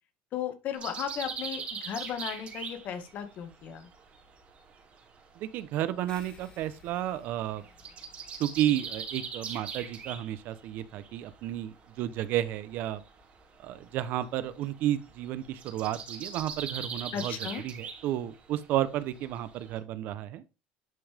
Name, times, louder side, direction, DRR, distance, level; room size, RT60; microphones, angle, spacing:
voice 1, 0.3-3.9 17.1-17.6, left 9 dB, 50° left, 2.1 m, -35 dB
sound 1, 0.8-5.0 5.3-11.6 11.9-19.8, right 6 dB, 35° right, 2.9 m, -41 dB
voice 2, 5.4-7.6 8.4-13.0 13.6-17.3 17.6-20.4, right 12 dB, 55° right, 0.9 m, -32 dB
sound 2, 6.1-10.9, left 5 dB, 30° left, 2.6 m, -58 dB
11.0 x 5.5 x 3.6 m
cardioid pair, 135°, 4 cm